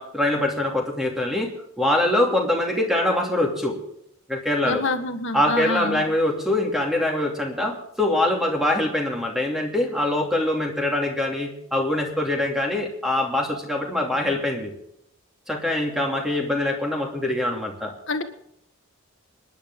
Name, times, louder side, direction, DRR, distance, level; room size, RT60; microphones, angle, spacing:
voice 1, 0.0-1.5 1.8-3.8 4.3-4.9 5.3-14.7 15.5-17.9, left 1 dB, ahead, 1 dB, 2.7 m, -23 dB
voice 2, 4.6-6.0 18.1-18.2, left 3 dB, 60° left, 7 dB, 1.6 m, -26 dB
26.0 x 10.5 x 3.7 m, 0.76 s
head